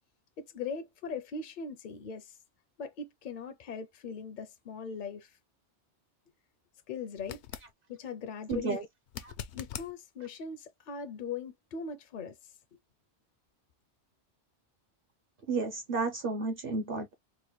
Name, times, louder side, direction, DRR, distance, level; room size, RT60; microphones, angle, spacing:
voice 1, 0.4-2.4 2.8-5.4 6.9-7.4 7.9-8.7 9.5-12.5, left 5 dB, 55° left, 0.6 m, -40 dB
sound 1, 7.2-7.7 9.1-9.9 12.9-13.0, left 9 dB, 75° left, 0.9 m, -42 dB
voice 2, 8.5-8.8 9.2-9.3 15.5-17.1, right 3 dB, 55° right, 0.9 m, -32 dB
4.1 x 2.1 x 3.1 m
omnidirectional pair, 1.2 m